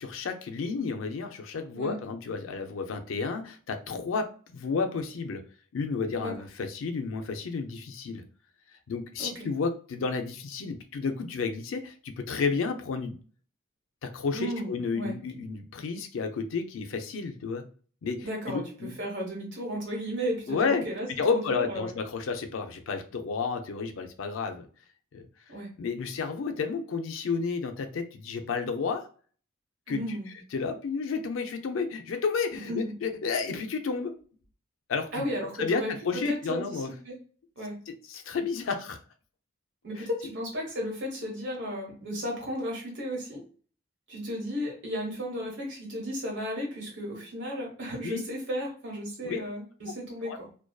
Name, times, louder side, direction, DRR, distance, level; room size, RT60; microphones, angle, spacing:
voice 1, 0.0-5.4 5.7-8.2 8.9-13.2 14.0-17.6 18.0-18.9 20.5-20.8 21.2-24.7 25.1-25.3 25.8-29.1 29.9-30.2 30.5-34.2 34.9-35.2 35.6-36.9 37.9-39.0 40.0-40.1 48.0-48.2 49.2-49.4 50.2-50.4, left 5 dB, 85° left, 6 dB, 0.4 m, -31 dB
voice 2, 14.3-15.1 18.2-21.9 25.5-25.7 29.9-30.3 32.7-32.9 35.1-37.2 37.6-37.7 39.8-43.4 44.1-50.5, equal, 70° right, -2 dB, 1.1 m, -34 dB
2.5 x 2.2 x 2.2 m, 0.41 s
head